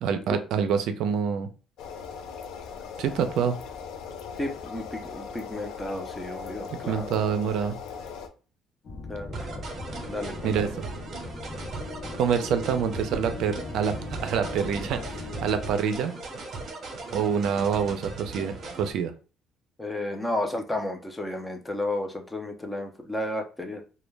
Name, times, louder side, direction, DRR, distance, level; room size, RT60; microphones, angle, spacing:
voice 1, 0.0-1.5 3.0-3.6 6.7-7.8 10.4-10.9 12.2-16.1 17.1-19.1, right 7 dB, 75° right, 8 dB, 0.4 m, -26 dB
sound 1, 1.8-8.3, left 6 dB, 80° left, 0.4 m, -39 dB
voice 2, 4.4-7.1 9.1-9.6 10.1-10.7 19.8-23.8, left 1 dB, 10° left, 4 dB, 0.5 m, -32 dB
sound 2, 8.8-15.8, left 3 dB, 55° left, 0.9 m, -39 dB
sound 3, 9.3-18.9, right 3 dB, 50° right, 0.8 m, -38 dB
2.2 x 2.1 x 3.2 m, 0.35 s
cardioid pair, 110°, 0 cm